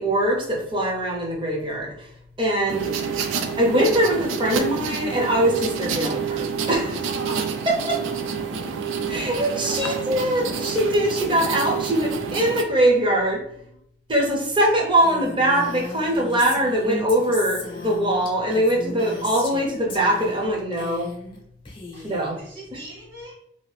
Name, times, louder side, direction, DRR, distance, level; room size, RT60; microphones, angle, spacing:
voice 1, 0.0-1.9 2.4-2.9 3.6-7.1 7.9-8.0 9.1-13.4 14.1-21.1 22.0-22.4, right 1 dB, 25° right, -1 dB, 0.6 m, -22 dB
sound 1, 2.7-12.6, right 6 dB, 90° right, 0.4 m, -28 dB
voice 2, 7.0-7.4 9.5-10.0 21.9-22.1 22.4-23.3, equal, 50° right, -7 dB, 1.0 m, -38 dB
Female speech woman speaking, 15.0-19.6 19.9-20.5 20.7-21.4 21.6-22.3, left 3 dB, 25° left, 0.6 m, -36 dB
2.8 x 2.5 x 3.2 m, 0.73 s
head